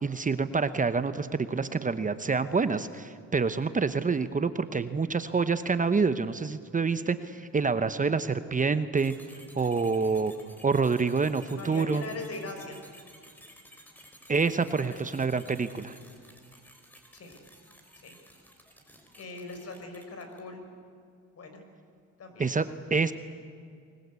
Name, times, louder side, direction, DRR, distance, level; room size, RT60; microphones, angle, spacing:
voice 1, 0.0-9.1 9.6-10.3 10.6-12.0 14.3-16.0 22.4-22.6 22.9-23.1, right 4 dB, 25° right, 11 dB, 1.0 m, -27 dB
sound 1, 9.0-20.6, equal, 5° left, 5.4 m, -54 dB
voice 2, 11.5-12.8 14.7-15.0 17.1-17.4 17.9-18.2 19.1-20.6 21.4-21.6 22.2-22.6, left 3 dB, 55° left, 6 dB, 5.6 m, -41 dB
24.5 x 21.0 x 8.4 m, 2.3 s
cardioid pair, 90°, 30 cm